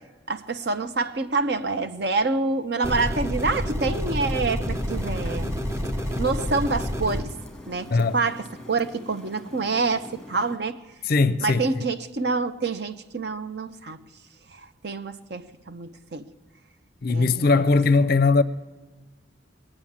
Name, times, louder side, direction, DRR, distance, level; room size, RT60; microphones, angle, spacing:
voice 1, 0.3-5.5 6.2-7.4 7.6-10.8 11.4-14.0 14.5-16.3 17.1-17.6, right 3 dB, 55° right, 0.8 m, -27 dB
sound 1, 2.8-7.2, equal, 15° right, 0.8 m, -28 dB
sound 2, 4.6-10.6, left 1 dB, 5° left, 1.7 m, -43 dB
voice 2, 11.0-11.6 17.0-18.4, left 3 dB, 50° left, 0.5 m, -19 dB
20.0 x 8.9 x 7.3 m
head